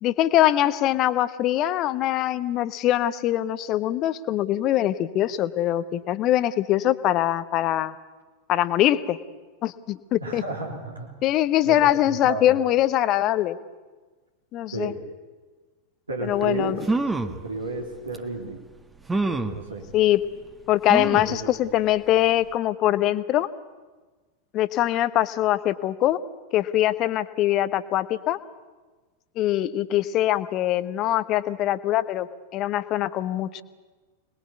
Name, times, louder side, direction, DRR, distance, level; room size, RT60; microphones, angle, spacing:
voice 1, 0.0-8.0 8.5-9.2 9.6-10.4 11.2-13.6 14.5-14.9 16.2-16.8 19.9-20.2 20.7-23.5 24.5-26.2 26.5-28.4 29.4-32.3 32.5-33.6, left 13 dB, 35° left, 13 dB, 1.1 m, -23 dB
voice 2, 10.2-11.1 11.6-12.5 14.7-15.0 16.1-16.8 17.2-18.6 19.4-19.9 20.9-21.5, right 3 dB, 80° right, 1 dB, 3.3 m, -33 dB
sound 1, 16.4-16.5 16.8-17.4 18.1-18.2 19.1-19.6 20.9-21.4 21.9-22.0 22.3-22.4, right 2 dB, 10° right, 1.4 m, -26 dB
26.0 x 20.5 x 8.4 m, 1.3 s
figure-of-eight pair, 90°, 0 cm